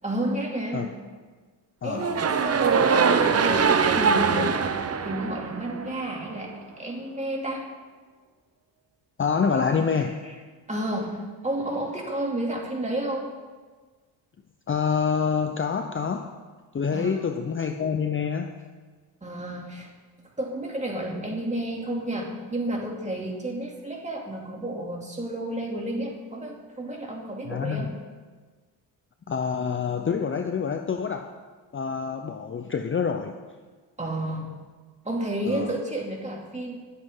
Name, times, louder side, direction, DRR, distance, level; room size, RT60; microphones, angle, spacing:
voice 1, 0.0-0.9 1.8-4.6 4.9-7.7 9.5-10.3 10.7-13.3 16.9-17.2 19.2-19.9 20.4-27.9 34.0-34.5 35.0-36.8, right 1 dB, 15° right, -1 dB, 2.9 m, -31 dB
voice 2, 1.8-2.2 9.2-10.2 14.7-16.3 16.7-18.5 27.5-27.9 29.3-31.3 31.7-33.4 35.5-35.7, left 6 dB, 30° left, 6 dB, 0.7 m, -27 dB
sound 1, 2.0-6.2, right 5 dB, 35° right, 0.8 m, -22 dB
21.0 x 8.0 x 3.8 m, 1.4 s
cardioid pair, 80°, 44 cm